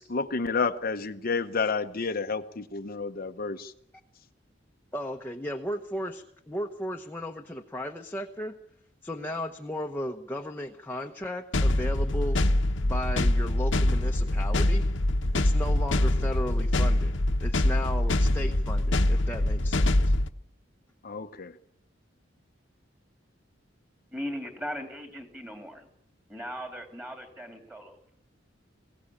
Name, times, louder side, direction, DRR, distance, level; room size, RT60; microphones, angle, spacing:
voice 1, 0.0-3.7 21.0-21.5, left 4 dB, 50° left, 6 dB, 0.8 m, -30 dB
voice 2, 4.9-8.5 9.0-12.4 12.8-14.9 15.3-17.1 17.4-20.1, left 1 dB, 10° left, 2 dB, 1.0 m, -35 dB
sound 1, 11.5-20.3, left 1 dB, 70° left, 1.1 m, -24 dB
voice 3, 24.1-25.9 26.3-28.0, equal, 10° right, 5 dB, 3.0 m, -38 dB
21.5 x 17.0 x 8.6 m, 0.77 s
head